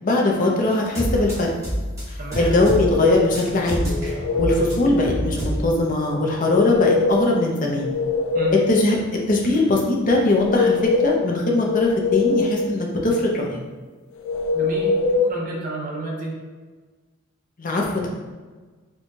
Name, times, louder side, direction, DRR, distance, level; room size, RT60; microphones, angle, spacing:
voice 1, 0.0-1.5 2.1-3.9 4.4-7.9 8.5-10.8 11.0-13.6 17.6-18.1, left 2 dB, 40° left, -1 dB, 0.6 m, -21 dB
sound 1, 0.7-5.8, equal, 15° right, 1.3 m, -27 dB
voice 2, 2.2-2.5 8.3-8.6 14.5-16.3, right 2 dB, 40° right, -3 dB, 0.8 m, -30 dB
sound 2, 2.5-3.4 3.9-4.7 6.3-7.3 7.7-8.8 10.2-11.2 11.7-12.7 14.3-15.3, left 4 dB, 85° left, 0.3 m, -22 dB
4.4 x 2.3 x 2.7 m, 1.3 s
head